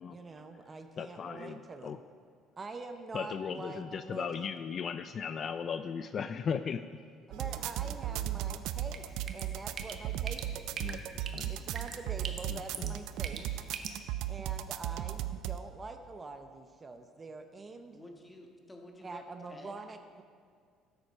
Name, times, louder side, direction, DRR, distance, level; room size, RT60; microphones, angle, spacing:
voice 1, 0.1-2.0 2.6-4.3 7.3-10.6 11.5-13.6 14.3-18.0 19.0-20.2, right 3 dB, 25° right, 7 dB, 0.7 m, -45 dB
voice 2, 1.0-2.0 3.1-6.8 10.8-11.0 11.3-11.5 12.5-12.9, left 6 dB, 40° left, 10 dB, 0.3 m, -37 dB
sound 1, 7.3-15.6, right 12 dB, 75° right, 0.5 m, -36 dB
Drip, 8.8-13.9, right 5 dB, 45° right, 1.0 m, -44 dB
voice 3, 17.8-19.7, left 1 dB, 15° left, 2 dB, 1.4 m, -51 dB
13.0 x 8.0 x 5.4 m, 2.1 s
cardioid pair, 120°, 0 cm